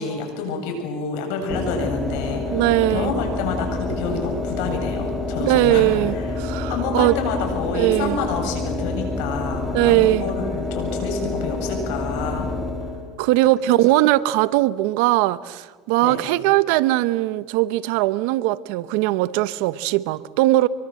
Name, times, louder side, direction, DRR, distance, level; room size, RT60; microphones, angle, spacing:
voice 1, 0.0-6.4 6.7-12.5 12.8-12.9 16.0-16.2, left 4 dB, 75° left, 4 dB, 7.6 m, -28 dB
sound 1, 1.5-13.2, left 3 dB, 5° left, 2.6 m, -28 dB
voice 2, 2.5-3.1 5.4-7.2 7.7-8.2 9.7-10.2 13.2-20.7, right 16 dB, 75° right, 16 dB, 0.9 m, -20 dB
26.0 x 23.5 x 7.8 m, 1.4 s
supercardioid pair, 120°, 0 cm